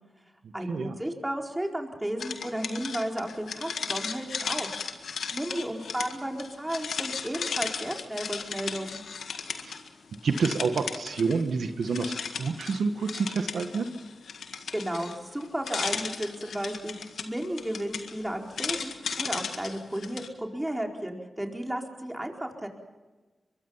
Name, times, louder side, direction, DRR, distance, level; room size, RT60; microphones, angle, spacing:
voice 1, 0.5-4.7 5.3-9.0 14.7-22.7, right 1 dB, 15° right, 2 dB, 4.5 m, -33 dB
sound 1, 2.2-9.9 10.1-11.5 11.8-20.3, left 6 dB, 85° left, 1.8 m, -36 dB
voice 2, 10.2-12.1 12.4-13.9, right 4 dB, 85° right, 7 dB, 1.4 m, -28 dB
23.5 x 22.5 x 5.7 m, 1.2 s
cardioid pair, 55°, 0 cm